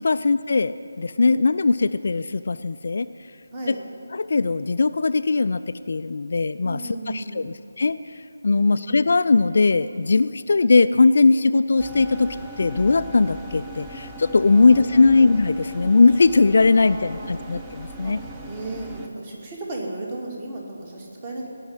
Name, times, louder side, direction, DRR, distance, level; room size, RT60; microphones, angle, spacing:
voice 1, 0.0-3.1 3.7-3.8 4.1-8.0 8.4-18.2, left 3 dB, 50° left, 12 dB, 0.3 m, -19 dB
voice 2, 3.5-3.8 6.6-7.5 8.5-8.8 14.5-15.1 16.7-17.4 18.0-18.1 18.5-21.5, right 2 dB, 30° right, -1 dB, 2.3 m, -35 dB
sound 1, 11.8-19.1, right 1 dB, 10° right, 0.8 m, -39 dB
17.5 x 6.1 x 9.7 m, 2.5 s
figure-of-eight pair, 155°, 0 cm